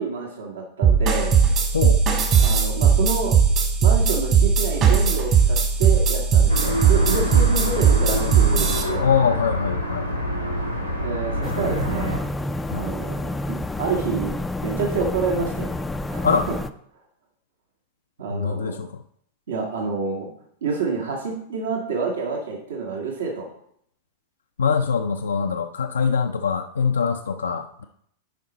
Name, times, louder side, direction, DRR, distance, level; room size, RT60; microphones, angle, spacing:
voice 1, 0.0-1.4 2.4-3.4 3.8-9.0 11.0-12.3 12.7-14.3 14.6-15.7 16.1-16.5 18.2-18.8 19.5-20.3 20.6-23.5, right 5 dB, 65° right, 0 dB, 1.6 m, -28 dB
sound 1, 0.8-8.8, right 6 dB, 35° right, 1.6 m, -18 dB
sound 2, 6.5-12.2, equal, 90° right, 1.3 m, -26 dB
voice 2, 9.0-10.1 12.7-12.9 16.2-16.5 18.3-19.0 24.6-27.8, left 6 dB, 70° left, 5 dB, 0.4 m, -23 dB
sound 3, 11.4-16.7, left 2 dB, 10° left, 0.4 m, -29 dB
9.4 x 5.1 x 4.0 m, 0.69 s
figure-of-eight pair, 90°, 0 cm